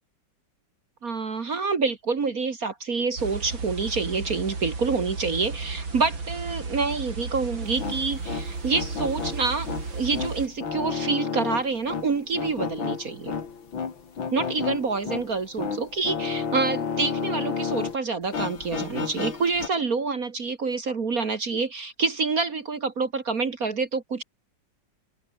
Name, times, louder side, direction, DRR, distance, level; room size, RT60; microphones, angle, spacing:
voice 1, 1.0-13.3 14.3-24.2, right 4 dB, 45° right, 2.1 m, -27 dB
sound 1, 3.2-10.5, right 4 dB, 75° right, 4.8 m, -34 dB
sound 2, 7.6-18.0 18.3-19.7, left 6 dB, 80° left, 3.2 m, -32 dB
omnidirectional pair, 2.1 m